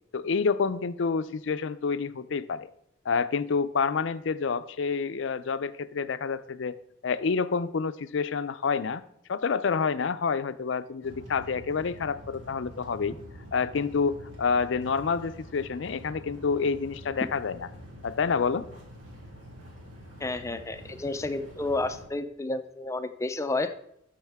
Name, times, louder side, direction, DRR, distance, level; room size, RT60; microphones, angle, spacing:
voice 1, 0.1-2.7 3.1-6.8 7.0-9.0 9.3-13.2 13.5-17.7 18.0-18.7, left 5 dB, 70° left, 14 dB, 0.5 m, -28 dB
sound 1, 11.0-22.0, equal, 85° right, 3.0 m, -46 dB
voice 2, 20.2-23.7, left 2 dB, 15° left, 9 dB, 0.4 m, -31 dB
12.0 x 6.6 x 3.5 m, 0.74 s
head